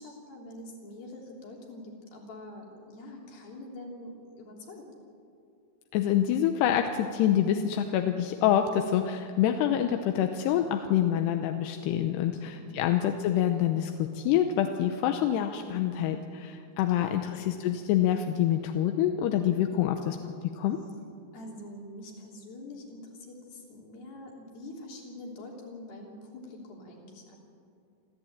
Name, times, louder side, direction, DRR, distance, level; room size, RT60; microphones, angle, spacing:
voice 1, 0.0-4.9 12.3-12.8 17.0-17.2 21.3-27.4, left 1 dB, 60° left, -1 dB, 5.1 m, -45 dB
voice 2, 5.9-20.8, left 10 dB, 80° left, 5 dB, 2.8 m, -26 dB
27.5 x 14.0 x 8.8 m, 2.5 s
omnidirectional pair, 5.1 m